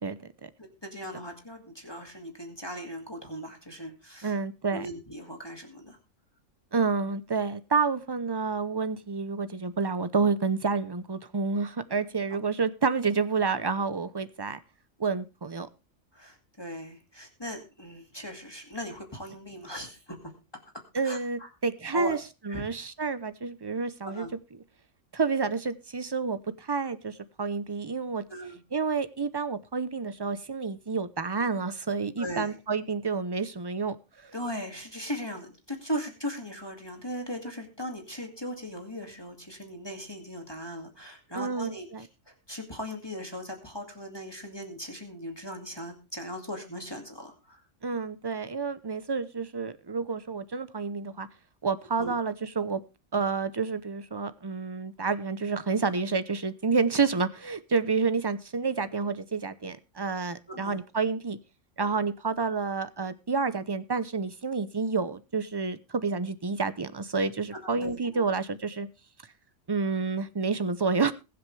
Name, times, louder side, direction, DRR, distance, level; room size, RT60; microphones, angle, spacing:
voice 1, 0.0-0.5 4.2-4.9 6.7-14.6 15.0-15.7 20.9-22.2 22.5-24.3 25.1-28.2 28.7-34.0 34.2-34.3 41.3-42.0 47.8-51.3 51.6-52.8 53.1-61.4 61.8-68.9 69.7-71.1, right 4 dB, 25° right, 14 dB, 0.6 m, -29 dB
voice 2, 0.6-4.4 4.7-6.0 16.1-20.3 21.0-21.5 21.9-22.2 22.5-22.6 24.0-24.3 28.3-28.6 32.2-32.6 34.3-47.6 52.0-52.1 60.5-60.8 67.5-68.2, equal, 20° left, 3 dB, 2.4 m, -38 dB
21.5 x 7.8 x 3.3 m, 0.29 s
omnidirectional pair, 1.3 m